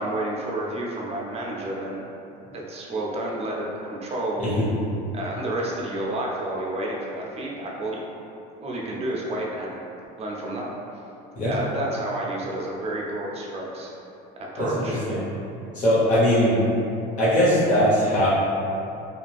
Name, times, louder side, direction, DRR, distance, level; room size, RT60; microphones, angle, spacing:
voice 1, 0.0-2.1 2.5-4.4 5.1-8.0 8.6-9.8 10.2-10.7 11.5-13.9 14.4-15.0, right 1 dB, 30° right, -3 dB, 0.6 m, -30 dB
voice 2, 15.7-16.6 17.2-18.3, equal, 40° left, -10 dB, 1.2 m, -20 dB
2.5 x 2.2 x 3.4 m, 2.7 s
supercardioid pair, 105°, 20 cm